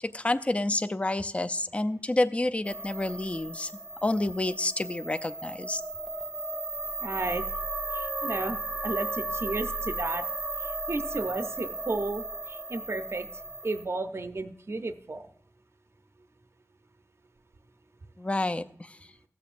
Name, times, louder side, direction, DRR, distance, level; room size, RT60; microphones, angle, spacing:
voice 1, 0.0-3.7 4.0-5.8 18.2-19.0, left 2 dB, 20° left, 10 dB, 0.4 m, -29 dB
sound 1, 2.6-13.8, right 2 dB, 5° right, 0.8 m, -35 dB
voice 2, 7.0-7.4 7.9-8.6 8.8-10.2 10.6-13.3 13.6-15.3, right 2 dB, 45° right, 8 dB, 0.6 m, -33 dB
16.0 x 7.0 x 2.5 m, 0.63 s
cardioid pair, 50°, 6 cm